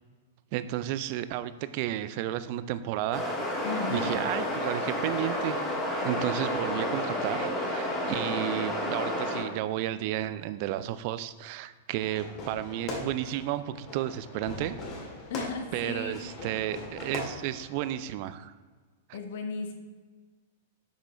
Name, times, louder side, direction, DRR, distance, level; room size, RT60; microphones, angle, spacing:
voice 1, 0.5-3.3 3.9-5.6 6.0-14.8 15.7-18.5, right 13 dB, 45° right, 13 dB, 0.4 m, -32 dB
sound 1, 3.1-9.4, left 1 dB, 10° left, 2.0 m, -30 dB
voice 2, 3.6-4.1 15.3-16.1 19.1-19.7, left 4 dB, 55° left, 4 dB, 1.1 m, -35 dB
Fireworks, 12.0-18.0, left 2 dB, 35° left, 2.0 m, -40 dB
8.1 x 6.0 x 3.2 m, 1.4 s
figure-of-eight pair, 100°, 0 cm